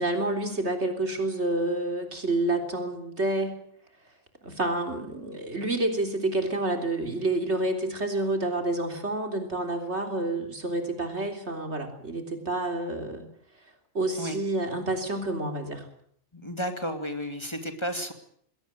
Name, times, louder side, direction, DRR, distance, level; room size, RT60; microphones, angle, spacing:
voice 1, 0.0-3.6 4.4-13.2 13.9-15.9, right 2 dB, 70° right, 4 dB, 3.9 m, -29 dB
voice 2, 16.3-18.1, equal, 25° left, 6 dB, 2.5 m, -32 dB
21.0 x 17.5 x 9.1 m, 0.67 s
omnidirectional pair, 1.2 m